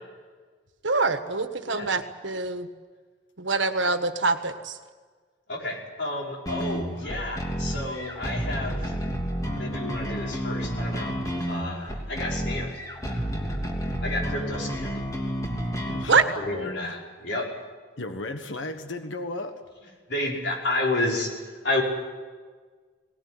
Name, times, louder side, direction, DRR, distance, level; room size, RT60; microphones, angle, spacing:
voice 1, 0.8-2.7 3.4-4.8 16.1-16.2, right 4 dB, 80° right, 8 dB, 1.5 m, -24 dB
voice 2, 5.5-8.9 9.5-11.2 11.5-12.8 14.0-14.9 16.4-17.5 20.1-21.8, left 2 dB, 65° left, -2 dB, 5.6 m, -30 dB
sound 1, 6.5-16.1, equal, 20° left, 2.9 m, -30 dB
voice 3, 15.9-17.0 18.0-19.5, left 2 dB, 90° left, 7 dB, 1.5 m, -35 dB
19.5 x 19.5 x 9.9 m, 1.5 s
head